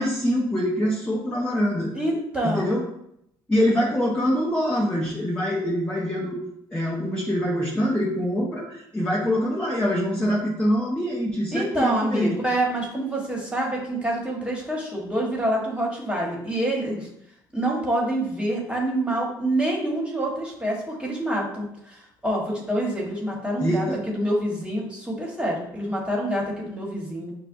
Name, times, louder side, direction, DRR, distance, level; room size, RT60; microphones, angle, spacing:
voice 1, 0.0-1.9 2.4-2.8 3.5-6.4 6.7-12.4 23.6-24.0, equal, 10° left, -6 dB, 0.8 m, -24 dB
voice 2, 1.9-2.8 11.5-17.1 17.5-27.3, right 1 dB, 10° right, -3 dB, 1.3 m, -26 dB
5.6 x 2.2 x 2.6 m, 0.76 s
supercardioid pair, 70°, 10 cm